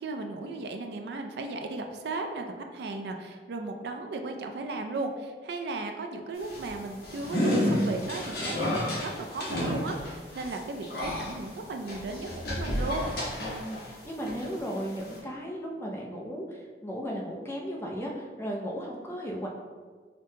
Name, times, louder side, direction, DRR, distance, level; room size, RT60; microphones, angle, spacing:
voice 1, 0.0-13.2, right 3 dB, 70° right, 4 dB, 0.3 m, -35 dB
sound 1, 6.4-13.9 14.3-15.2, left 1 dB, 60° left, 1.0 m, -31 dB
voice 2, 13.4-19.5, equal, 15° left, -2 dB, 0.4 m, -36 dB
5.1 x 2.2 x 2.7 m, 1.5 s
head